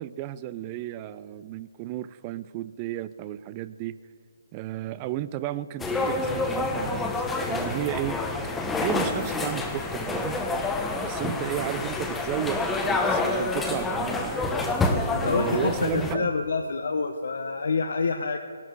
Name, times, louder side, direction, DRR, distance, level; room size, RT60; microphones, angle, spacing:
voice 1, 0.0-4.0 4.5-8.2 8.8-10.4 11.0-14.4 15.2-16.3, right 13 dB, 25° right, 16 dB, 0.4 m, -33 dB
sound 1, 5.8-16.1, left 3 dB, 5° left, 0.9 m, -28 dB
voice 2, 15.1-18.4, left 4 dB, 65° left, 5 dB, 0.9 m, -27 dB
18.0 x 11.5 x 4.7 m, 2.4 s
hypercardioid pair, 155°, 0 cm